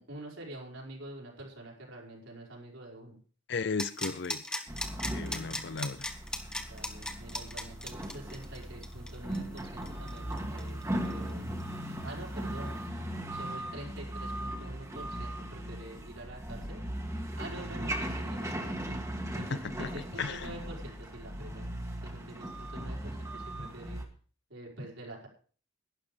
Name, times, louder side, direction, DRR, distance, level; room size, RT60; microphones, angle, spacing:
voice 1, 0.0-3.2 6.7-11.5 12.0-12.8 13.3-16.8 17.4-19.0 19.3-21.6 22.0-24.0 24.5-25.3, right 1 dB, 70° right, 5.0 m, -46 dB
voice 2, 3.5-4.6 5.1-6.1 19.5-19.9 20.2-20.5, left 4 dB, 55° left, 0.6 m, -35 dB
sound 1, 3.8-11.3 11.6-11.7, left 1 dB, 5° left, 1.3 m, -37 dB
sound 2, 4.7-24.1, right 1 dB, 15° right, 1.6 m, -38 dB
12.0 x 11.0 x 5.1 m
head